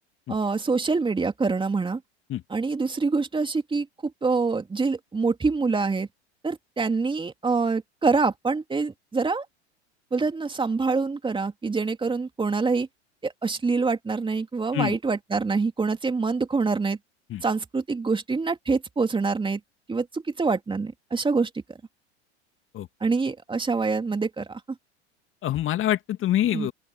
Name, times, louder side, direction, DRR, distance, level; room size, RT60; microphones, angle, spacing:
voice 1, 0.3-2.0 2.5-6.1 6.4-9.4 10.1-12.9 13.2-17.0 17.4-19.6 19.9-21.5 23.0-24.6 26.5-26.7, right 4 dB, 15° right, 2.9 m, -25 dB
voice 2, 25.4-26.7, left 12 dB, 35° left, 2.3 m, -25 dB
open air
hypercardioid pair, 90°, 35 cm